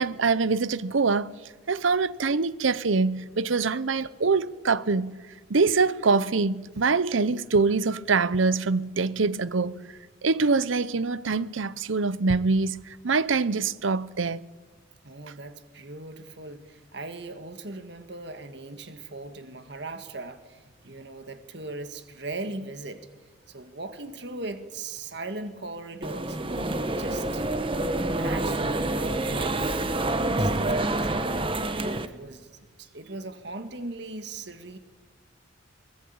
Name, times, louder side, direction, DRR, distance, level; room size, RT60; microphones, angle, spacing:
voice 1, 0.0-1.3 1.7-5.2 5.5-9.8 10.2-14.4, right 4 dB, 85° right, 0.8 m, -24 dB
voice 2, 15.0-23.1 23.5-26.4 26.9-27.5 28.0-29.8 30.0-31.5 31.9-32.5 32.8-34.8, right 2 dB, 60° right, 1.9 m, -39 dB
sound 1, 26.0-32.1, right 2 dB, 25° right, 1.1 m, -27 dB
23.0 x 19.5 x 8.8 m
head